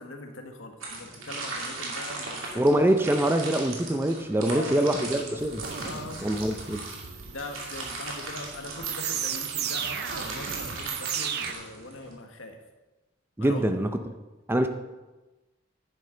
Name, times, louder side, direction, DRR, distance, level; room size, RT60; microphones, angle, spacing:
voice 1, 0.0-2.7 4.4-5.4 5.8-6.2 7.0-12.6 13.4-13.7, left 2 dB, 80° left, 4 dB, 1.5 m, -41 dB
sound 1, 0.8-12.2, right 3 dB, 85° right, 2.6 m, -38 dB
voice 2, 2.6-5.6 6.2-6.8 13.4-13.9 14.5-14.7, right 1 dB, 10° right, 7 dB, 0.5 m, -24 dB
sound 2, 5.4-11.5, right 8 dB, 55° right, 0.7 m, -35 dB
11.0 x 10.0 x 3.8 m, 1.1 s
head